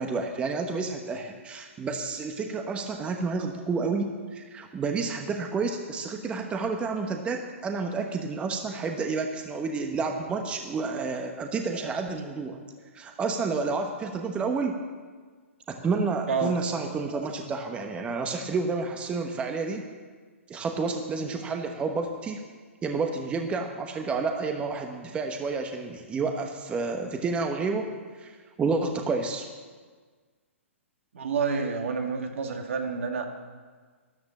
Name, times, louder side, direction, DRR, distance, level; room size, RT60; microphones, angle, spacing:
voice 1, 0.0-12.6 12.9-14.8 15.7-19.8 20.5-22.4 22.8-27.9 28.2-28.3 28.6-29.5, right 4 dB, 15° right, 4 dB, 1.1 m, -30 dB
voice 2, 31.1-33.3, right 5 dB, 70° right, 3 dB, 2.2 m, -29 dB
13.5 x 11.0 x 7.3 m, 1.5 s
hypercardioid pair, 130°, 7 cm